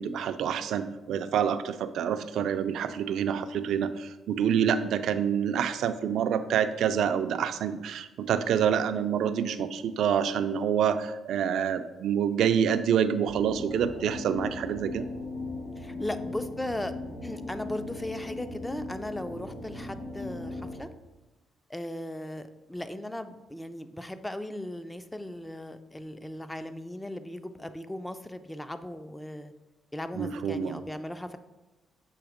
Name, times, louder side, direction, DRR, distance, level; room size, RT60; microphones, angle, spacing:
voice 1, 0.0-15.1 30.2-30.8, right 8 dB, 75° right, 11 dB, 0.4 m, -27 dB
sound 1, 13.3-20.8, left 2 dB, 75° left, 1.9 m, -38 dB
voice 2, 15.8-16.9 17.2-20.9 21.7-29.5 29.9-31.4, left 1 dB, 10° left, 10 dB, 0.4 m, -37 dB
7.1 x 2.8 x 5.0 m, 1.1 s
cardioid pair, 90°, 0 cm